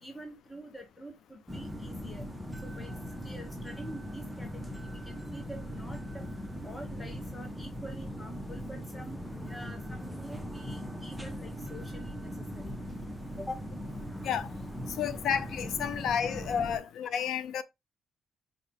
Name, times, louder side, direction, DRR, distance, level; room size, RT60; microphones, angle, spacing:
voice 1, 0.0-2.2 2.6-2.9 3.2-6.3 6.6-12.7 13.4-13.9, equal, 15° left, 1.2 m, -46 dB
sound 1, 1.5-16.8, equal, ahead, 0.8 m, -40 dB
voice 2, 15.0-17.6, left 8 dB, 75° left, 0.5 m, -31 dB
5.0 x 2.8 x 3.4 m
cardioid pair, 95°, 0 cm